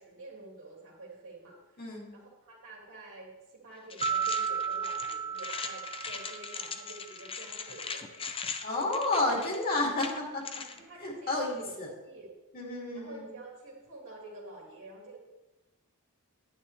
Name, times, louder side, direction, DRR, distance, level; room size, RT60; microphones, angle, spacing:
voice 1, 0.0-1.8 2.1-8.3 10.8-12.3 12.9-15.2, right 2 dB, 60° right, -3 dB, 2.5 m, -48 dB
voice 2, 1.8-2.1 8.6-10.1 11.0-11.9 12.5-13.3, left 2 dB, 40° left, -2 dB, 2.4 m, -30 dB
sound 1, 3.9-10.8, left 5 dB, 25° left, 0.6 m, -40 dB
sound 2, 4.0-7.1, right 7 dB, 30° right, 0.5 m, -34 dB
10.5 x 9.6 x 3.2 m, 1.0 s
head